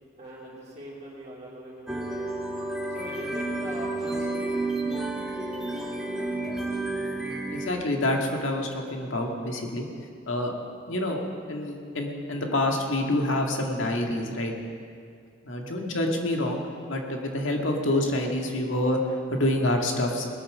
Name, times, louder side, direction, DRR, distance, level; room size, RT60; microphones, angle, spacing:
voice 1, 0.2-2.3 2.9-4.7, right 1 dB, 35° right, -8 dB, 2.9 m, -41 dB
sound 1, 1.9-7.7, right 2 dB, 5° right, 1.2 m, -31 dB
voice 2, 7.2-9.8 10.3-10.5 10.9-14.5 15.4-20.2, left 1 dB, 85° left, 2 dB, 1.8 m, -27 dB
19.5 x 8.6 x 6.5 m, 2.3 s
head